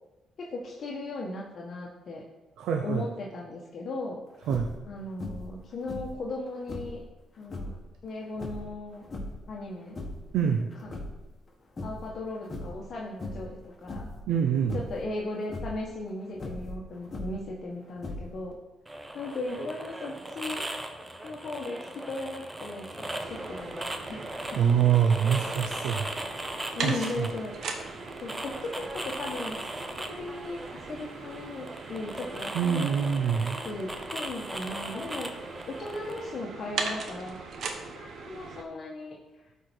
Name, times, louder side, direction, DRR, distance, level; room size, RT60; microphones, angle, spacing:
voice 1, 0.4-2.2 2.8-4.2 4.8-7.0 7.4-7.7 8.0-9.0 9.5-10.0 10.4-10.5 10.8-10.9 11.8-14.1 14.7-18.6 19.1-20.7 21.2-23.7 24.0-24.6 26.7-27.6 28.2-32.9 33.6-35.3 35.7-39.4, left 2 dB, 55° left, -2 dB, 1.2 m, -37 dB
voice 2, 2.6-3.1 4.5-4.7 10.3-10.7 14.3-14.8 24.6-26.0 26.8-27.3 32.5-33.6, right 8 dB, 80° right, 4 dB, 0.6 m, -25 dB
sound 1, 4.4-4.9 5.2-5.6 5.9-7.0 7.4-7.8 8.3-9.5 9.8-10.3 10.7-11.5 11.8-12.1 12.4-12.9 13.2-13.6 13.9-14.2 14.7-15.0 15.4-15.8 16.3-17.5 18.0-18.5, left 1 dB, 35° left, 1.8 m, -38 dB
sound 2, 18.9-36.4, right 1 dB, 15° right, 0.9 m, -38 dB
sound 3, 23.2-38.6, right 4 dB, 65° right, 1.1 m, -40 dB
12.0 x 4.6 x 4.5 m, 1.1 s
cardioid pair, 90°, 0 cm